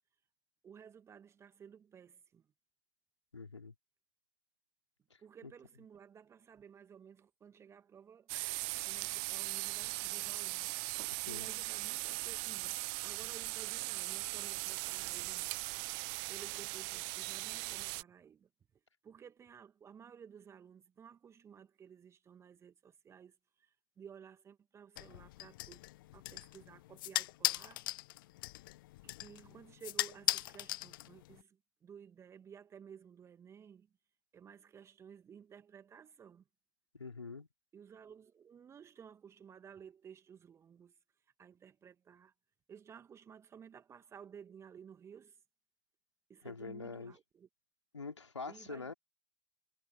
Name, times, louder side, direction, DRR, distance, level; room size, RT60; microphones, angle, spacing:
voice 1, 0.6-2.5 5.2-15.6 16.3-18.5 19.0-25.8 26.1-27.8 29.2-33.9 34.3-36.4 37.7-42.3 42.7-45.4 46.3-47.5 48.4-48.9, right 7 dB, 20° right, 1.7 m, -55 dB
voice 2, 3.3-3.7 5.1-5.5 11.1-11.5 36.9-37.5 46.4-47.1 47.9-48.9, left 4 dB, 80° left, 2.8 m, -45 dB
sound 1, 8.3-18.0, right 38 dB, 35° right, 0.4 m, -39 dB
sound 2, 25.0-31.4, left 17 dB, 50° left, 0.5 m, -39 dB
figure-of-eight pair, 100°, 15 cm